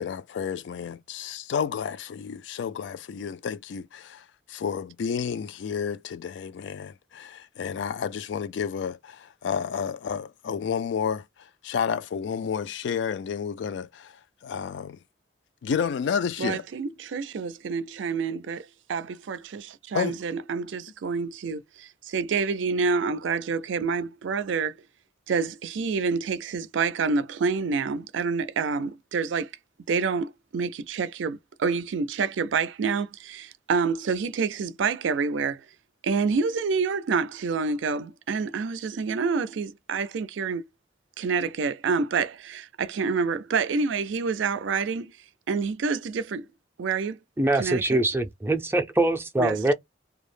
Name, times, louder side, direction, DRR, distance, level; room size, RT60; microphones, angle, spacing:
voice 1, 0.0-14.2 14.4-15.0 15.6-16.6 19.9-20.2, left 7 dB, 75° left, 0.3 m, -31 dB
voice 2, 16.4-24.8 25.3-29.5 29.9-35.6 36.0-40.7 41.2-45.1 45.5-46.5 46.8-47.2 47.5-48.0 49.4-49.7, right 5 dB, 80° right, 0.4 m, -28 dB
voice 3, 47.4-49.7, right 2 dB, 10° right, 0.4 m, -23 dB
2.2 x 2.0 x 3.1 m
head